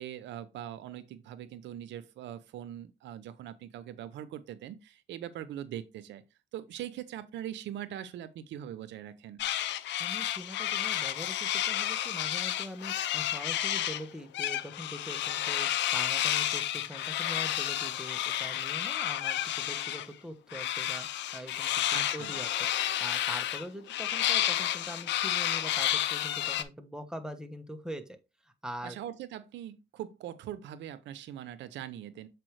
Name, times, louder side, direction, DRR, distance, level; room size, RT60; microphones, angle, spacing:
voice 1, 0.0-6.2 6.5-9.4 21.9-22.3 28.8-32.3, right 11 dB, 90° right, 0.7 m, -42 dB
sound 1, 9.4-14.0 14.3-20.1 20.5-26.6, left 12 dB, 85° left, 0.6 m, -31 dB
voice 2, 10.0-21.1 21.3-22.5 22.8-28.2 28.4-29.0, equal, 5° right, 1.2 m, -43 dB
7.6 x 4.7 x 3.2 m
cardioid pair, 85°, 18 cm